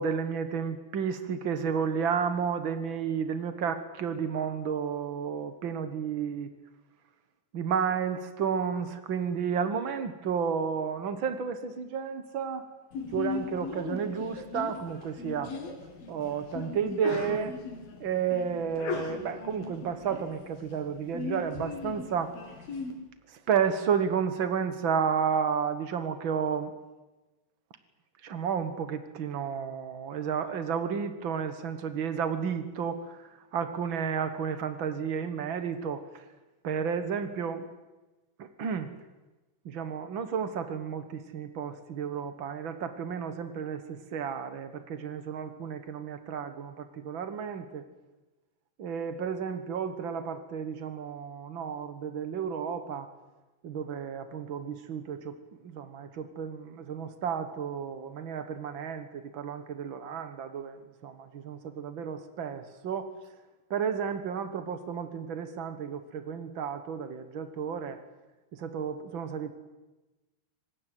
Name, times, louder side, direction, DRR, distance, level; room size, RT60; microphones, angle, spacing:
voice 1, 0.0-6.5 7.5-12.7 13.1-15.5 16.1-17.6 18.0-22.3 23.3-26.7 28.2-36.2 36.6-37.7 38.4-38.9 39.6-47.8 48.8-53.1 53.6-55.4 55.6-63.1 63.7-68.0 68.5-69.5, right 7 dB, 80° right, 10 dB, 1.0 m, -32 dB
Sneeze, 12.9-22.9, left 4 dB, 70° left, 4.6 m, -38 dB
25.5 x 19.5 x 9.2 m, 1.1 s
omnidirectional pair, 4.5 m